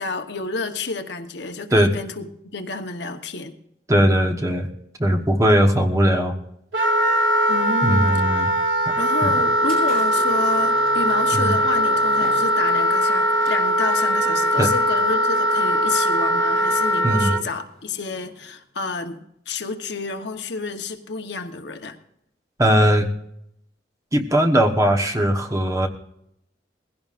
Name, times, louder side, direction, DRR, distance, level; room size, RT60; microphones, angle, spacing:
voice 1, 0.0-3.6 7.5-8.4 9.0-22.0, left 3 dB, 65° left, 6 dB, 1.0 m, -30 dB
voice 2, 3.9-4.7 5.0-6.4 7.8-8.5 8.9-9.0 9.2-9.3 11.3-11.6 14.6-14.7 17.0-17.3 22.6-23.1 24.1-25.9, equal, 15° right, 3 dB, 1.1 m, -19 dB
Wind instrument woodwind instrument, 6.7-17.4, equal, 90° right, 2.0 m, -20 dB
sound 1, 9.1-18.6, equal, 50° right, 6.6 m, -43 dB
20.0 x 16.5 x 2.5 m, 0.77 s
head